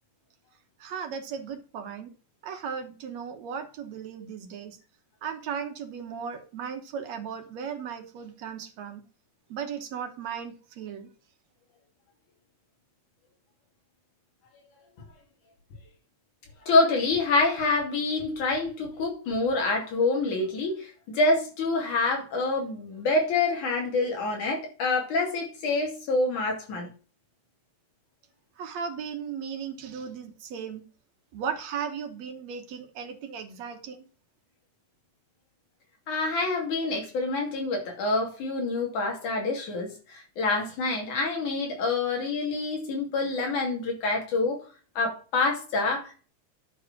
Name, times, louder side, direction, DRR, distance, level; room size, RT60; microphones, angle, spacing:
voice 1, 0.8-2.1 2.4-4.8 5.2-9.0 9.5-11.1 28.6-30.8 31.3-34.1, right 7 dB, 65° right, 6 dB, 2.5 m, -36 dB
voice 2, 16.6-26.9 36.1-44.6 45.0-46.3, left 3 dB, 90° left, 1 dB, 4.3 m, -27 dB
10.5 x 4.8 x 6.2 m, 0.37 s
omnidirectional pair, 3.4 m